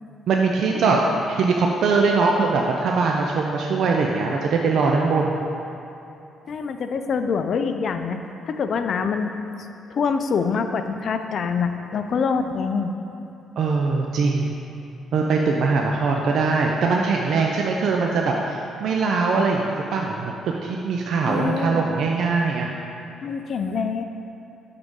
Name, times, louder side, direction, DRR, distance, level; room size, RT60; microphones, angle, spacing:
voice 1, 0.3-1.0 1.3-5.4 13.6-14.6 15.1-20.3 20.6-22.7, right 4 dB, 70° right, 0 dB, 0.4 m, -21 dB
voice 2, 6.5-8.2 8.5-9.4 9.9-12.9 21.3-21.9 23.2-24.0, left 5 dB, 55° left, 8 dB, 0.4 m, -25 dB
7.8 x 3.9 x 3.7 m, 2.8 s
cardioid pair, 90°, 0 cm